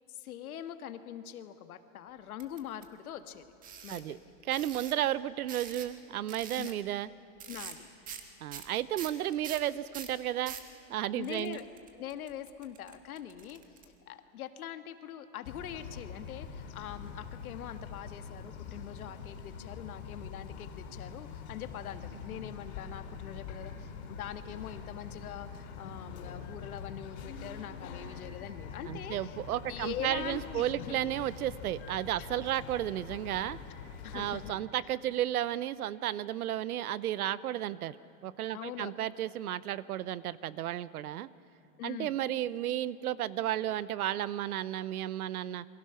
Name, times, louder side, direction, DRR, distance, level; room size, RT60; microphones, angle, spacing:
voice 1, 0.1-3.5 3.8-4.2 6.6-6.7 7.5-7.9 11.1-11.7 11.9-13.6 14.1-29.4 29.7-31.0 32.2-32.3 34.0-34.5 38.5-38.9 39.2-39.3 41.8-42.2, left 10 dB, 75° left, 8 dB, 1.7 m, -43 dB
sound 1, 2.4-2.8 3.6-4.0 4.5-4.9 5.5-6.0 6.3-6.7 7.4-7.8 8.1-8.2 8.5-10.7 11.2-13.8, right 8 dB, 20° right, 1.4 m, -44 dB
voice 2, 4.4-7.1 8.4-10.6 10.9-11.6 28.9-33.6 34.1-38.0 38.2-41.3 41.8-45.6, right 12 dB, 75° right, 18 dB, 0.9 m, -33 dB
Bird vocalization bird call bird song, 15.4-34.5, left 6 dB, 50° left, 4.4 m, -44 dB
28.5 x 23.0 x 5.8 m, 2.9 s
supercardioid pair, 160°, 44 cm